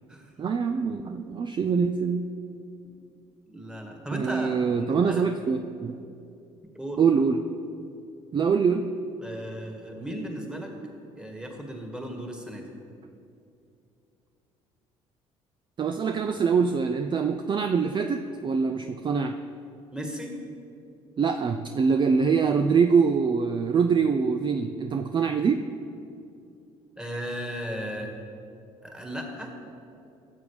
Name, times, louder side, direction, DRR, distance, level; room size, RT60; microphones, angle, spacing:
voice 1, 0.4-2.3 4.1-6.0 7.0-7.4 8.3-8.9 15.8-19.4 21.2-25.7, right 5 dB, 35° right, 7 dB, 0.4 m, -24 dB
voice 2, 3.5-4.5 4.8-5.2 6.7-7.0 9.2-10.7 11.2-12.7 19.9-20.3 27.0-28.1 28.8-29.5, equal, 5° right, 2 dB, 1.7 m, -36 dB
13.0 x 7.2 x 3.3 m, 2.6 s
hypercardioid pair, 65°, 14 cm